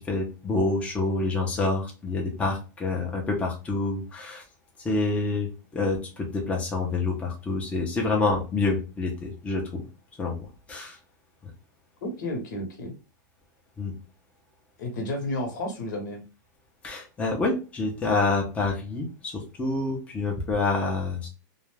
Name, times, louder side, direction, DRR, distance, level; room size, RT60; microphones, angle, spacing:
voice 1, 0.0-4.4 4.8-5.5 5.7-9.8 10.2-11.0 13.8-13.9 16.8-21.3, left 3 dB, 10° left, -1 dB, 0.6 m, -27 dB
voice 2, 12.0-12.9 14.8-16.2, left 1 dB, 70° left, 3 dB, 1.0 m, -32 dB
2.4 x 2.2 x 3.1 m, 0.32 s
supercardioid pair, 145°, 10 cm